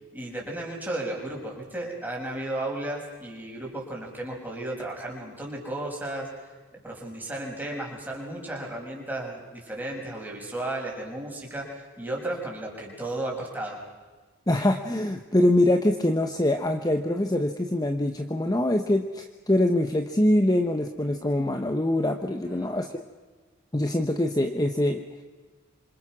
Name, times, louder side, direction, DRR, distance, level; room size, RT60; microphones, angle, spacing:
voice 1, 0.1-6.3 6.7-13.8 22.4-22.7, right 1 dB, 10° right, -2 dB, 5.9 m, -34 dB
voice 2, 14.5-23.0 23.7-25.0, left 1 dB, 20° left, 6 dB, 1.0 m, -24 dB
27.0 x 26.5 x 6.1 m, 1.4 s
head